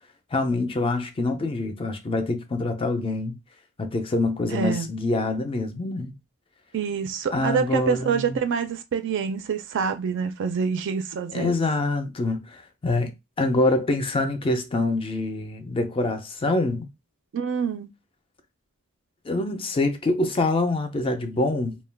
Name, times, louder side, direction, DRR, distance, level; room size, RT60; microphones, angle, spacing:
voice 1, 0.3-3.4 3.8-6.1 7.3-8.4 11.3-13.1 13.4-16.9 19.3-21.8, left 2 dB, 25° left, 0.3 m, -25 dB
voice 2, 4.5-4.9 6.7-11.6 17.3-17.9, right 6 dB, 55° right, 0.4 m, -26 dB
2.2 x 2.1 x 3.3 m
head